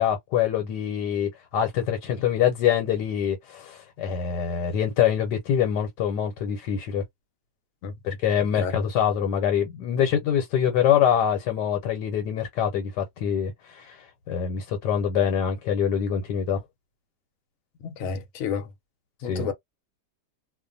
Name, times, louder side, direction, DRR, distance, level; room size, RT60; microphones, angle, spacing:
voice 1, 0.0-7.0 8.0-16.6 19.2-19.5, left 9 dB, 80° left, 1.3 m, -25 dB
voice 2, 17.8-18.7 19.2-19.5, left 6 dB, 60° left, 1.0 m, -30 dB
2.5 x 2.4 x 2.6 m
omnidirectional pair, 1.8 m